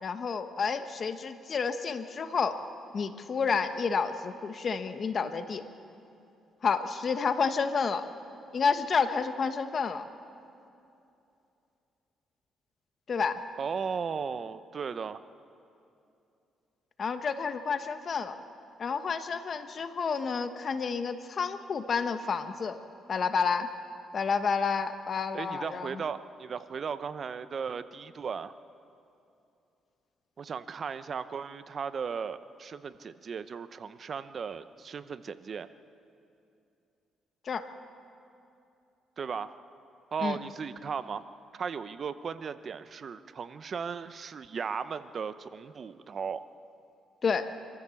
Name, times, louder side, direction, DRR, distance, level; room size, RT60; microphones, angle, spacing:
voice 1, 0.0-2.6 2.9-5.6 6.6-8.0 8.5-10.0 13.1-13.4 17.0-18.4 18.8-22.8 23.1-23.7 24.1-26.0 37.4-37.7 40.2-40.4 47.2-47.5, left 5 dB, 50° left, 9 dB, 1.1 m, -30 dB
voice 2, 13.6-15.2 25.3-28.5 30.4-35.7 39.2-39.5 40.1-41.2 41.5-46.4, right 6 dB, 50° right, 13 dB, 0.8 m, -36 dB
26.0 x 14.5 x 7.1 m, 2.7 s
cardioid pair, 90°, 0 cm